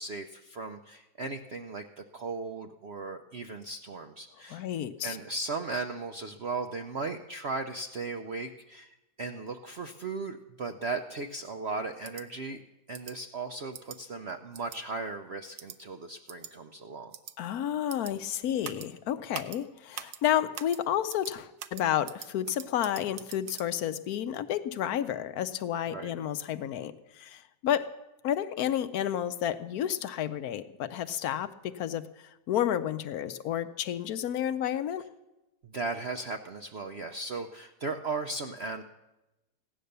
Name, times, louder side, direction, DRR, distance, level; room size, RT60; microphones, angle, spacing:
voice 1, 0.0-4.7 5.0-12.6 12.9-17.1 25.9-26.1 35.6-38.8, right 3 dB, 65° right, 6 dB, 0.6 m, -37 dB
voice 2, 4.5-5.2 17.4-27.9 28.2-35.0, left 10 dB, 65° left, 11 dB, 1.0 m, -31 dB
sound 1, 12.0-12.2 12.9-13.1 13.7-14.0 14.5-14.8 15.6-15.8 16.3-16.5 17.1-17.3 17.9-18.1 18.6-18.9 19.3-19.6 19.9-20.2 20.5-20.8 21.1-21.3 21.6-23.7, right 10 dB, 85° right, 1.5 m, -42 dB
16.5 x 10.0 x 6.7 m, 1.0 s
omnidirectional pair, 2.0 m